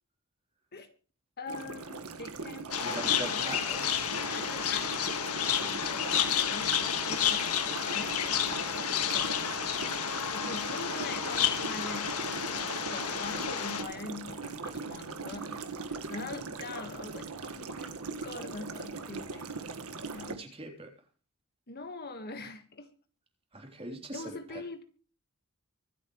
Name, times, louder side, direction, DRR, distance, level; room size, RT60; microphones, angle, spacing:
voice 1, 1.4-3.5 4.1-9.6 10.3-15.6 15.9-18.0 18.2-19.6 20.1-20.4 21.7-22.9 24.1-24.8, left 3 dB, 45° left, 7 dB, 1.7 m, -43 dB
sound 1, 1.5-20.4, right 4 dB, 80° right, 1.8 m, -40 dB
sound 2, 2.7-13.8, left 9 dB, 85° left, 1.6 m, -31 dB
voice 2, 2.8-4.2 20.3-20.9 23.5-24.6, right 2 dB, 25° right, 1 dB, 3.5 m, -42 dB
24.5 x 8.8 x 3.2 m, 0.38 s
head